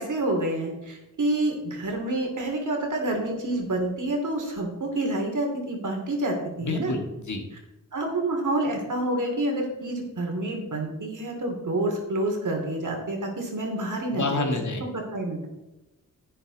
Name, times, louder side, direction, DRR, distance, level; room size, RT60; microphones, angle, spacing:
voice 1, 0.0-6.9 7.9-14.4 14.9-15.5, right 1 dB, 65° right, 2 dB, 2.8 m, -28 dB
voice 2, 6.6-7.4 14.1-14.8, left 3 dB, 60° left, 3 dB, 1.9 m, -28 dB
10.5 x 8.9 x 4.0 m, 0.95 s
cardioid pair, 70°, 33 cm